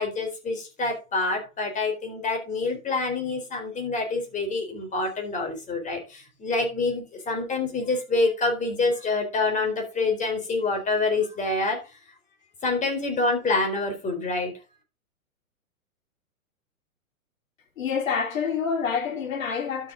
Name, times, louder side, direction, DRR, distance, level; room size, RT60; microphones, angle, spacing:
voice 1, 0.0-11.8 12.6-14.5, left 3 dB, 15° left, 4.2 m, -26 dB
voice 2, 17.8-19.9, left 6 dB, 65° left, 3.4 m, -27 dB
12.0 x 6.7 x 3.9 m
hypercardioid pair, 120°, 43 cm